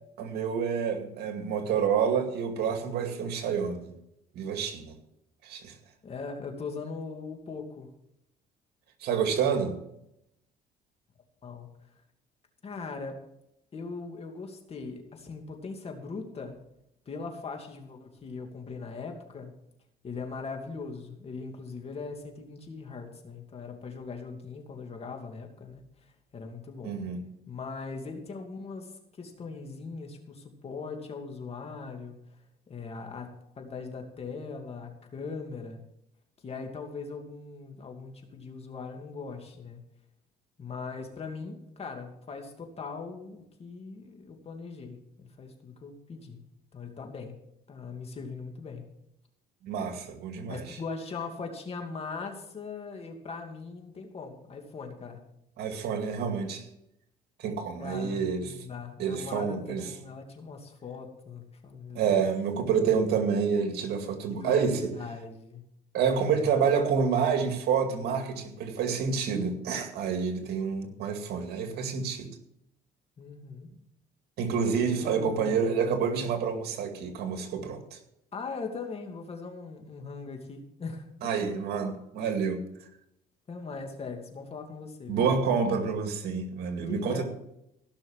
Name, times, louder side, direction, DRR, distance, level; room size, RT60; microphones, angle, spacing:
voice 1, 0.2-3.9 4.4-5.0 5.4-5.8 9.0-9.8 26.8-27.2 49.6-50.6 55.6-56.7 57.4-58.5 59.0-59.9 62.0-64.9 65.9-72.3 74.4-78.0 81.2-82.7 85.1-87.2, right 6 dB, 75° right, 5 dB, 2.3 m, -28 dB
voice 2, 6.0-7.9 11.4-11.7 12.6-13.2 13.7-16.6 17.1-19.5 20.0-27.0 27.5-32.4 32.7-35.8 36.4-39.8 40.6-46.4 46.7-47.4 47.7-48.8 50.5-55.2 57.8-62.1 64.3-65.6 65.9-66.4 73.2-73.7 74.9-75.7 78.3-81.1 83.5-85.3 86.8-87.2, left 4 dB, 35° left, 3 dB, 2.6 m, -40 dB
16.5 x 6.3 x 7.3 m, 0.80 s
cardioid pair, 110°, 17 cm